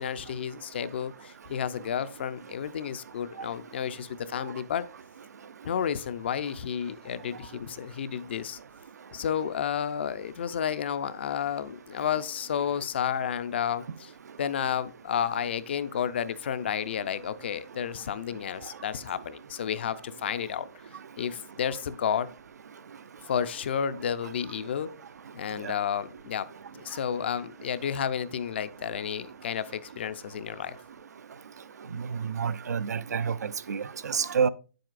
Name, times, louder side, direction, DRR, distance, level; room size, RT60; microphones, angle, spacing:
voice 1, 0.0-4.9 5.6-8.6 9.1-14.1 14.4-20.7 21.2-22.3 23.3-24.9 25.3-26.5 26.7-30.8, left 8 dB, 40° left, 0.5 m, -31 dB
voice 2, 32.1-34.5, right 6 dB, 80° right, 0.5 m, -28 dB
8.7 x 7.7 x 2.5 m
hypercardioid pair, 170°, 9 cm